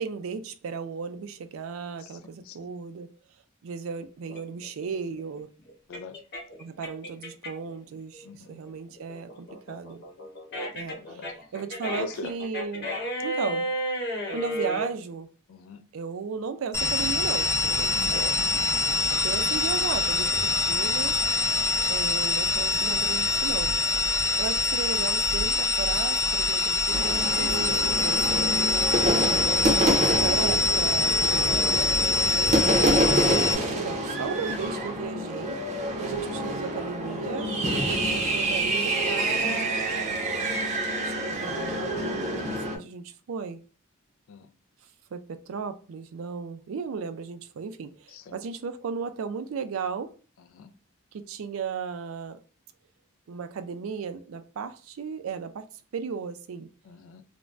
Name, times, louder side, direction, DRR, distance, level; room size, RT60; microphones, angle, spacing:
voice 1, 0.0-3.1 3.6-5.5 6.6-10.0 10.7-12.9 13.2-13.7 14.3-15.3 15.9-18.4 19.2-21.2 21.9-23.8 24.4-28.6 29.3-29.8 30.2-31.2 32.2-35.6 36.0-40.2 41.0-43.6 45.1-50.1 51.1-52.4 53.3-55.7 55.9-56.7, right 5 dB, 80° right, 0.4 m, -35 dB
sound 1, 4.3-7.7 8.1-14.9, equal, 55° left, 1.0 m, -33 dB
voice 2, 5.9-6.2 8.2-8.5 11.0-11.3 11.9-12.3 15.5-15.9 18.0-18.3 39.9-40.1 44.3-44.5 48.1-48.3 50.5-50.7 56.9-57.2, left 4 dB, 70° left, 0.4 m, -41 dB
sound 2, 16.7-33.5, left 2 dB, 15° left, 0.5 m, -24 dB
sound 3, 26.9-42.8, right 1 dB, 35° right, 0.6 m, -27 dB
2.5 x 2.1 x 3.1 m
head